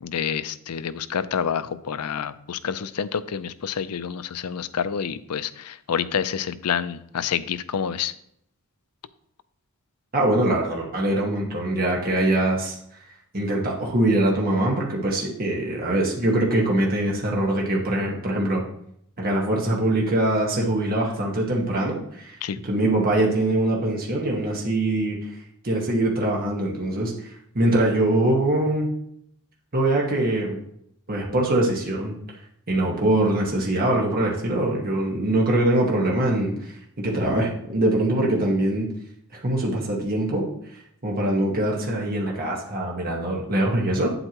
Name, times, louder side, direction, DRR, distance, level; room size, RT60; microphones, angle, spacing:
voice 1, 0.0-8.1 22.4-22.6, left 7 dB, 85° left, 14 dB, 0.5 m, -28 dB
voice 2, 10.1-12.8 13.3-18.6 19.2-22.4 22.6-25.3 25.6-27.1 27.5-28.9 29.7-30.6 31.1-32.1 32.7-36.7 37.0-38.9 39.3-40.4 41.0-44.1, right 1 dB, 40° right, -2 dB, 1.6 m, -23 dB
8.9 x 8.0 x 3.0 m, 0.71 s
head